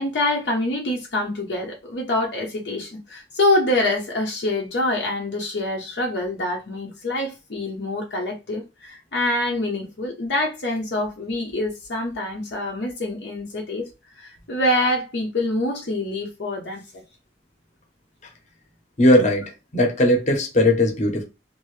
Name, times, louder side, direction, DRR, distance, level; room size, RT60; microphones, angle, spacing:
voice 1, 0.0-13.9 14.1-17.0, left 1 dB, 70° left, 0.7 m, -25 dB
voice 2, 19.0-21.2, left 1 dB, 40° left, 0.9 m, -18 dB
2.7 x 2.6 x 3.1 m
head